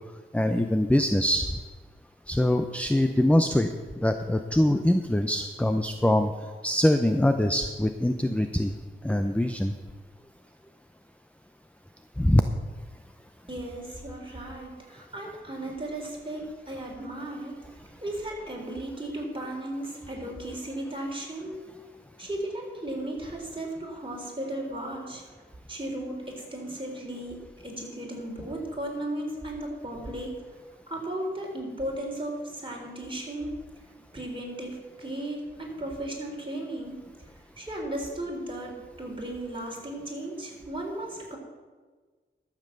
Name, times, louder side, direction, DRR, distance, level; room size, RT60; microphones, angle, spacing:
voice 1, 0.3-1.5 2.3-6.3 6.6-8.7 9.0-9.7 12.2-12.4, left 1 dB, 5° left, 7 dB, 0.6 m, -23 dB
voice 2, 13.5-17.6 18.0-21.6 22.2-25.2 25.7-30.3 30.9-33.6 34.1-37.0 37.6-41.4, right 1 dB, 25° right, -1 dB, 3.6 m, -35 dB
12.5 x 7.5 x 6.7 m, 1.4 s
wide cardioid pair, 85°, 21 cm